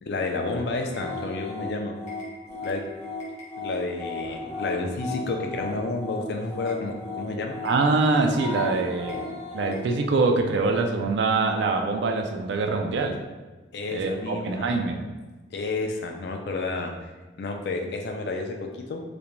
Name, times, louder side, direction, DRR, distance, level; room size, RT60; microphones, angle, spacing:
voice 1, 0.0-2.0 2.6-2.8 3.6-7.6 13.7-14.7 15.5-17.1 17.4-19.0, left 3 dB, 65° left, 3 dB, 0.3 m, -30 dB
sound 1, 0.9-9.9, left 3 dB, 40° left, 0.7 m, -35 dB
voice 2, 7.6-9.3 9.5-13.2 13.9-15.0, right 3 dB, 75° right, 4 dB, 0.3 m, -24 dB
2.5 x 2.1 x 3.0 m, 1.2 s
head